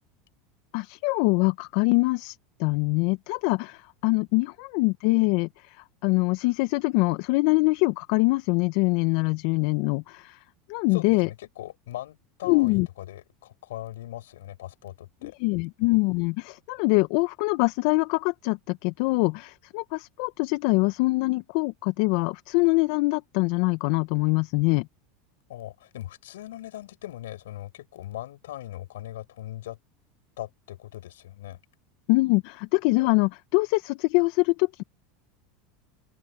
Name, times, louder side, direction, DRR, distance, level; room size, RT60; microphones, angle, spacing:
voice 1, 0.7-5.8 6.0-10.4 10.7-11.3 12.4-12.9 15.2-24.9 32.1-34.8, left 25 dB, 65° left, 1.5 m, -24 dB
voice 2, 10.9-15.3 25.5-29.8 30.4-31.6, left 14 dB, 80° left, 7.0 m, -39 dB
open air
hypercardioid pair, 90°, 0 cm